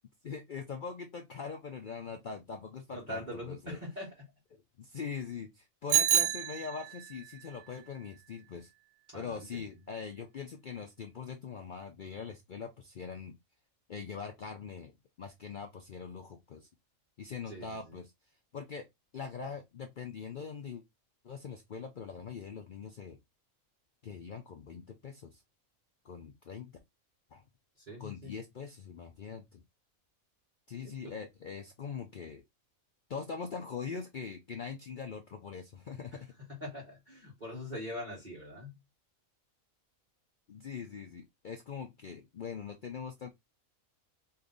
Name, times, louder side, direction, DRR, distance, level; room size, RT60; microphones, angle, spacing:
voice 1, 0.2-3.8 4.5-8.7 9.1-13.3 13.9-14.9 15.2-16.7 17.2-18.1 18.5-18.9 19.1-20.8 21.2-23.2 24.0-25.4 26.0-26.7 27.3-27.4 28.0-29.6 30.7-32.4 33.1-36.3 40.5-43.3, left 6 dB, 65° left, 0.5 m, -42 dB
voice 2, 2.9-4.1 9.1-9.6 17.5-18.0 27.8-28.3 31.0-31.1 36.5-38.7, left 1 dB, 35° right, 1.5 m, -42 dB
Bicycle bell, 5.9-7.2, right 10 dB, 80° right, 1.1 m, -28 dB
3.1 x 2.7 x 3.8 m
omnidirectional pair, 1.5 m